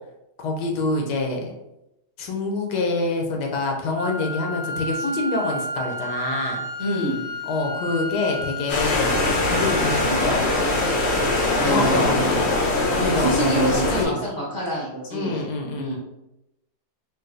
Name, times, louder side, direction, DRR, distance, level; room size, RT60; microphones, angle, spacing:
voice 1, 0.4-1.5 2.2-6.6 7.5-9.2 9.5-10.4 11.6-12.5 12.9-14.2 15.1-16.0, left 3 dB, 85° left, 2 dB, 1.2 m, -26 dB
sound 1, 3.9-12.0, equal, 90° right, 1.2 m, -33 dB
voice 2, 6.8-7.2 11.6-12.7 13.1-15.5 15.7-16.0, right 1 dB, 25° right, -6 dB, 0.4 m, -27 dB
sound 2, 8.7-14.0, left 2 dB, 60° left, 0.7 m, -22 dB
3.8 x 2.3 x 2.5 m, 0.90 s
omnidirectional pair, 1.8 m